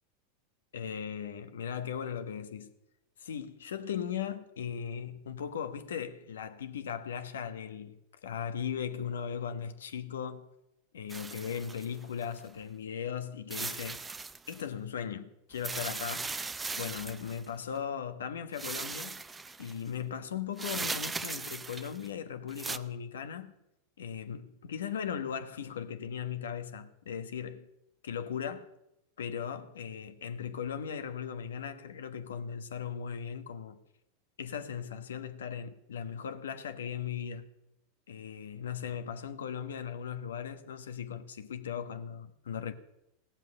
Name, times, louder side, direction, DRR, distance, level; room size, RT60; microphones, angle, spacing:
voice 1, 0.7-2.7 3.2-10.5 10.9-14.0 14.5-16.4 16.8-19.2 19.6-23.5 24.0-27.7 28.0-28.7 29.2-33.8 34.4-37.5 38.1-42.7, left 8 dB, 85° left, 1.2 m, -38 dB
sound 1, 11.1-12.4 13.5-14.6 15.5-17.5 18.5-19.8 20.6-22.1 22.5-22.8, right 4 dB, 15° right, 0.7 m, -38 dB
16.5 x 7.6 x 9.8 m
hypercardioid pair, 105°, 0 cm